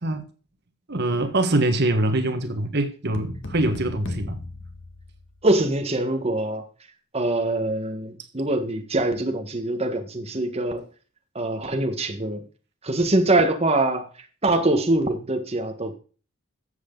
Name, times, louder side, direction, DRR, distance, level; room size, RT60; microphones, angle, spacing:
voice 1, 0.9-4.4, right 1 dB, 55° right, 1.6 m, -24 dB
sound 1, 3.1-5.7, left 1 dB, 65° left, 1.8 m, -36 dB
voice 2, 5.4-6.7 7.1-10.8 11.4-12.4 12.8-14.1 14.4-16.0, right 2 dB, 30° right, 1.6 m, -23 dB
14.0 x 8.0 x 4.0 m
head